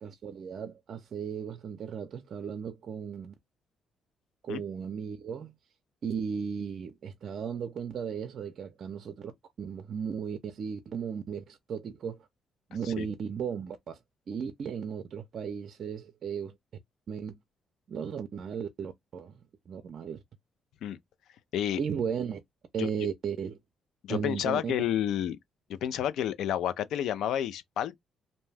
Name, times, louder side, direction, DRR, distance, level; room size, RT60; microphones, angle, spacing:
voice 1, 0.0-3.3 4.4-5.5 6.0-9.3 9.6-12.3 12.7-14.0 14.3-16.6 17.1-17.4 17.9-19.4 19.7-20.2 21.8-22.4 22.7-23.6 24.1-24.8, right 7 dB, 60° right, 0.4 m, -35 dB
voice 2, 24.1-25.4 25.7-28.0, left 10 dB, 80° left, 0.3 m, -30 dB
2.6 x 2.2 x 3.2 m
cardioid pair, 90°, 0 cm